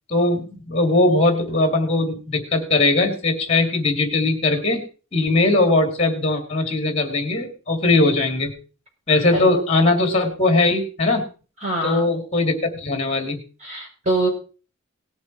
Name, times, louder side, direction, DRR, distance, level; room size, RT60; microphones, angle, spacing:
voice 1, 0.1-4.8 5.1-8.5 9.1-11.3 11.8-13.4, left 2 dB, 30° left, 6 dB, 2.4 m, -20 dB
voice 2, 11.6-12.1 13.6-14.3, right 1 dB, 35° right, -1 dB, 6.2 m, -24 dB
18.0 x 7.3 x 4.5 m, 0.37 s
head